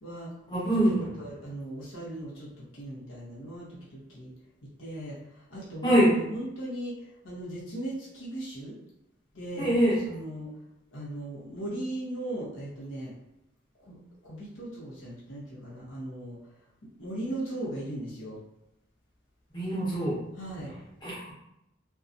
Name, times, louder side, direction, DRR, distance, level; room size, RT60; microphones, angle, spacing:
voice 1, 0.0-0.3 0.9-4.3 4.6-8.8 9.3-9.7 10.0-10.5 10.9-13.1 13.8-14.0 14.2-16.4 17.0-18.4 20.3-20.7, right 1 dB, 85° left, -7 dB, 0.9 m, -38 dB
voice 2, 0.5-1.0 5.8-6.1 9.6-9.9 19.5-20.1 21.0-21.3, equal, 25° left, -7 dB, 0.9 m, -23 dB
2.7 x 2.3 x 2.5 m, 0.84 s
head